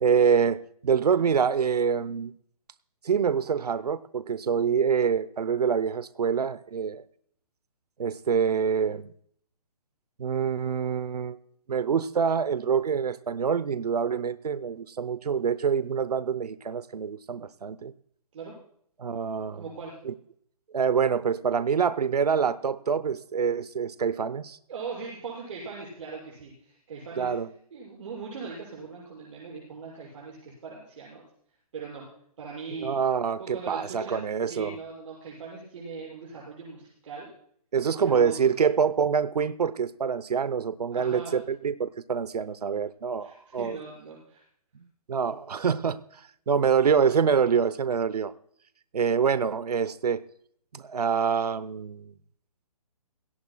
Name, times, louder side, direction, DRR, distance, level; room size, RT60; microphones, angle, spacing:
voice 1, 0.0-2.3 3.0-7.0 8.0-9.1 10.2-11.4 11.7-17.9 19.0-19.6 20.0-20.1 20.7-24.6 27.2-27.5 32.8-34.8 37.7-43.8 45.1-46.0 46.5-48.3 48.9-50.2 50.7-52.1, right 6 dB, 85° right, 16 dB, 0.8 m, -26 dB
voice 2, 19.5-19.9 24.7-27.3 27.7-31.2 31.7-32.1 32.4-33.0 33.4-37.3 38.0-38.4 40.9-41.4 43.2-44.4, right 4 dB, 50° right, -3 dB, 6.8 m, -40 dB
19.5 x 17.5 x 2.3 m, 0.65 s
hypercardioid pair, 155°, 20 cm